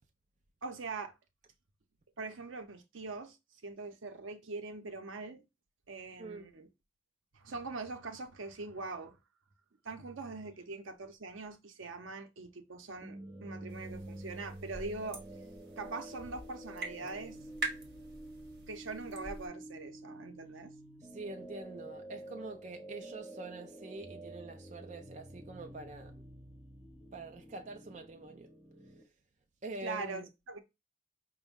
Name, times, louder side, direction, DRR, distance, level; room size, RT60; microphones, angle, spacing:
voice 1, 0.6-1.1 2.2-3.4 3.6-5.4 5.9-6.7 7.3-9.2 9.8-15.2 15.8-17.4 18.7-20.7 29.8-30.6, right 3 dB, 85° right, 0.7 m, -42 dB
sound 1, 13.0-29.0, right 1 dB, 10° right, 0.8 m, -49 dB
sound 2, 13.7-19.5, right 2 dB, 55° right, 1.2 m, -45 dB
voice 2, 21.1-26.2 27.1-28.5 29.6-30.3, right 2 dB, 35° right, 0.4 m, -45 dB
5.0 x 2.2 x 3.5 m
head